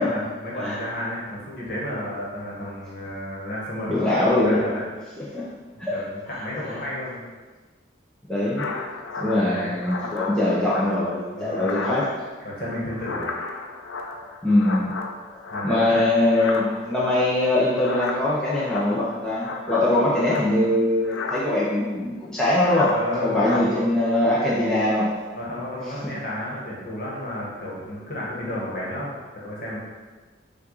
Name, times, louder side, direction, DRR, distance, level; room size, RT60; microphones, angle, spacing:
voice 1, 0.0-4.8 5.9-7.2 9.3-9.8 11.3-11.9 12.4-13.5 15.5-16.0 22.9-23.8 25.4-29.8, equal, 45° left, -5 dB, 1.3 m, -32 dB
voice 2, 3.9-4.6 5.2-5.5 5.8-6.0 6.3-6.8 8.3-8.7 9.2-12.1 14.4-14.9 15.6-22.9 23.2-25.1 26.0-26.1, left 1 dB, 5° left, -8 dB, 0.6 m, -22 dB
sound 1, 8.6-11.2 11.5-12.4 12.7-16.0 16.2-17.0 17.7-20.8 21.0-21.4 22.5-23.0 23.3-23.6, left 3 dB, 85° left, 0.5 m, -34 dB
5.7 x 2.4 x 3.9 m, 1.3 s
head